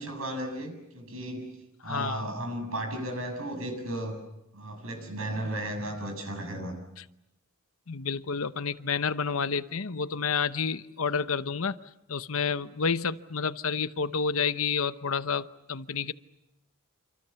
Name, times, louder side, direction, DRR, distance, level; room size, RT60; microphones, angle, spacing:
voice 1, 0.0-1.5 1.8-4.2 4.5-6.7, right 1 dB, 75° right, 6 dB, 7.4 m, -34 dB
voice 2, 1.8-2.3 7.9-11.8 12.1-16.1, left 5 dB, 75° left, 12 dB, 0.9 m, -29 dB
27.5 x 27.5 x 7.0 m, 0.88 s
head